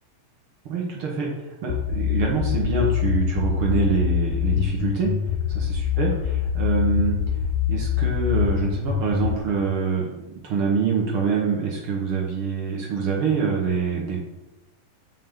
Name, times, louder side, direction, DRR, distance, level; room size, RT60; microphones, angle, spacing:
voice 1, 0.6-1.3 1.6-5.1 5.5-7.2 7.7-14.3, right 5 dB, 60° right, -1 dB, 1.5 m, -25 dB
sound 1, 1.7-9.4, left 10 dB, 80° left, 1.6 m, -24 dB
7.4 x 5.5 x 3.8 m, 1.0 s
omnidirectional pair, 3.8 m